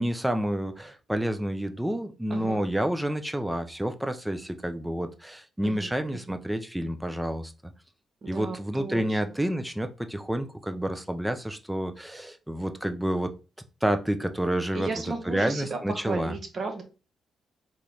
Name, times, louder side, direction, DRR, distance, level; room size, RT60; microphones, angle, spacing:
voice 1, 0.0-7.5 8.3-13.3 13.8-14.9 15.3-16.3, right 1 dB, 5° right, 8 dB, 0.4 m, -29 dB
voice 2, 5.6-6.4 8.2-9.4 14.7-16.8, right 3 dB, 35° right, 6 dB, 0.7 m, -35 dB
3.8 x 2.9 x 3.2 m, 0.33 s
wide cardioid pair, 170°, 0 cm